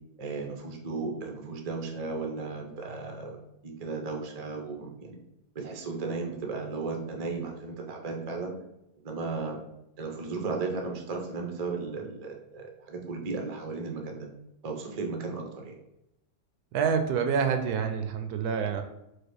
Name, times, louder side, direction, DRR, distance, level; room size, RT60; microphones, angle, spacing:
voice 1, 0.2-3.4 3.6-5.2 5.5-8.5 9.0-9.6 10.0-14.3 14.6-15.8, right 4 dB, 50° right, 2 dB, 0.4 m, -35 dB
voice 2, 16.7-18.8, right 6 dB, 75° right, 7 dB, 1.0 m, -27 dB
4.8 x 2.3 x 4.5 m, 0.85 s
omnidirectional pair, 1.8 m